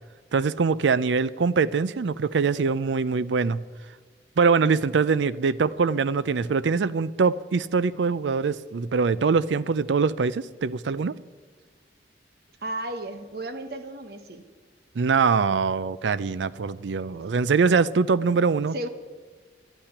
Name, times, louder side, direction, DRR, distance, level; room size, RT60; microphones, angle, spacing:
voice 1, 0.3-3.6 4.4-11.1 15.0-18.7, right 5 dB, 85° right, 0.5 m, -23 dB
voice 2, 12.6-14.4 18.7-18.9, right 1 dB, 60° right, 1.1 m, -34 dB
12.0 x 8.8 x 9.8 m
head